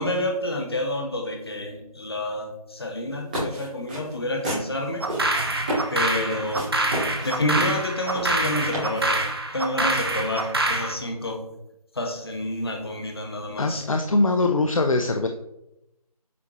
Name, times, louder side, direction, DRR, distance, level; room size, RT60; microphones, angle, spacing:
voice 1, 0.0-5.1 5.9-6.7 7.2-9.2 9.5-11.4 11.9-13.8, left 1 dB, 40° left, 2 dB, 1.3 m, -29 dB
sound 1, 3.1-9.3, right 1 dB, 15° right, 2.0 m, -32 dB
sound 2, 5.0-10.9, right 2 dB, 40° right, 0.8 m, -26 dB
voice 2, 13.6-15.3, left 2 dB, 55° left, 5 dB, 0.6 m, -22 dB
8.3 x 4.2 x 3.0 m, 0.86 s
figure-of-eight pair, 175°, 20 cm